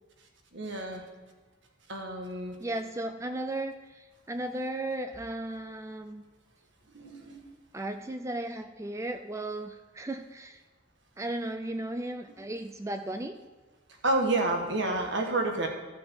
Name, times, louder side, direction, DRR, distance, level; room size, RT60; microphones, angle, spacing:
voice 1, 0.5-1.0 1.9-2.6 6.9-7.5 14.0-15.7, right 2 dB, 60° right, 2 dB, 1.5 m, -29 dB
voice 2, 2.6-6.2 7.7-10.6 11.2-13.4, right 1 dB, 15° right, 8 dB, 0.4 m, -35 dB
14.5 x 6.1 x 4.6 m, 1.3 s
head